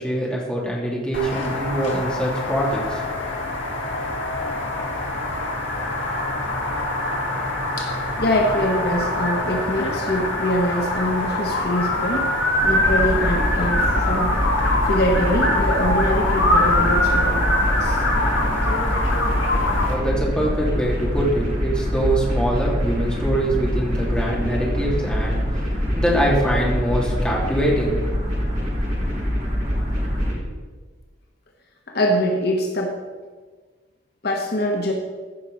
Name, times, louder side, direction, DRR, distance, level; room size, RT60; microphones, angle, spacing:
voice 1, 0.0-3.0 19.8-27.9, right 1 dB, 5° left, -4 dB, 2.7 m, -24 dB
sound 1, 1.1-19.9, left 1 dB, 70° left, 2.1 m, -24 dB
voice 2, 7.8-12.3 12.6-14.3 14.8-18.0 31.9-33.0 34.2-34.9, equal, 55° left, 1 dB, 1.3 m, -24 dB
sound 2, 12.6-30.3, equal, 40° right, 3.8 m, -24 dB
15.5 x 6.3 x 5.4 m, 1.4 s
head